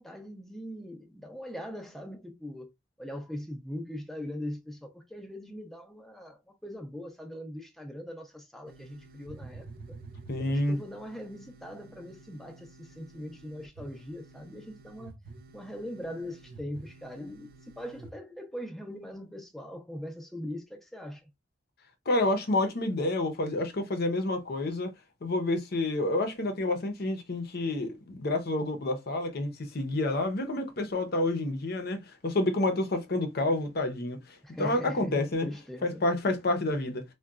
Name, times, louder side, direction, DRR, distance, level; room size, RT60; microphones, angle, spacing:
voice 1, 0.0-2.7 3.0-9.7 10.4-15.1 15.5-17.5 17.8-21.2 34.4-36.0, equal, ahead, 0.5 m, -41 dB
sound 1, 8.7-18.1, right 3 dB, 50° right, 0.6 m, -50 dB
voice 2, 10.3-10.8 22.1-24.9 25.2-35.5 35.8-37.0, left 2 dB, 55° left, 0.6 m, -29 dB
3.8 x 2.2 x 2.3 m
head